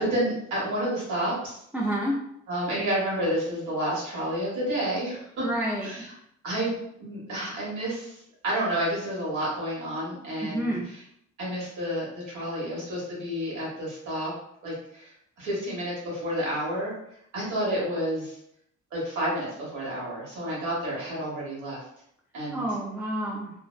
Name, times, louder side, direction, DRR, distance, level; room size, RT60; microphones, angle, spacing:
voice 1, 0.0-1.6 2.5-5.5 5.8-6.1 6.4-8.2 8.4-11.0 11.4-14.3 14.6-15.1 15.4-16.9 17.3-18.4 18.9-21.8 22.3-22.7, right 1 dB, 75° right, -6 dB, 1.3 m, -30 dB
voice 2, 1.7-2.2 5.4-6.0 10.4-10.9 22.5-23.5, right 1 dB, 5° right, -5 dB, 0.3 m, -29 dB
2.5 x 2.0 x 2.4 m, 0.73 s
cardioid pair, 90°, 30 cm